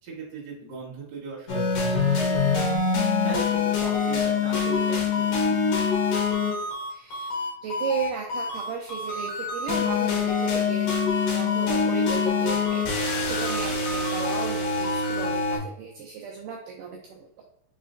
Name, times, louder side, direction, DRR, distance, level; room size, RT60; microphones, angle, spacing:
voice 1, 0.0-5.9, right 3 dB, 55° right, -6 dB, 1.2 m, -39 dB
sound 1, 1.5-15.6, left 5 dB, 60° left, 2.3 m, -25 dB
voice 2, 6.9-7.3 7.6-10.9 11.3-17.3, right 6 dB, 85° right, 0 dB, 1.9 m, -35 dB
5.6 x 3.3 x 2.5 m, 0.74 s
omnidirectional pair, 4.2 m